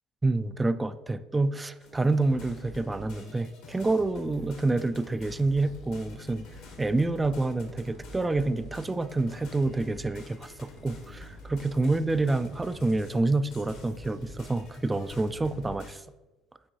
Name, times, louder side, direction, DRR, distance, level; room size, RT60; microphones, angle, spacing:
voice 1, 0.2-6.5 6.8-16.0, right 2 dB, 15° right, 13 dB, 0.3 m, -28 dB
sound 1, 1.8-16.0, left 1 dB, 65° left, 1.1 m, -47 dB
sound 2, 5.7-15.7, left 3 dB, 35° left, 0.6 m, -55 dB
8.9 x 4.4 x 2.6 m, 1.1 s
figure-of-eight pair, 55°, 0 cm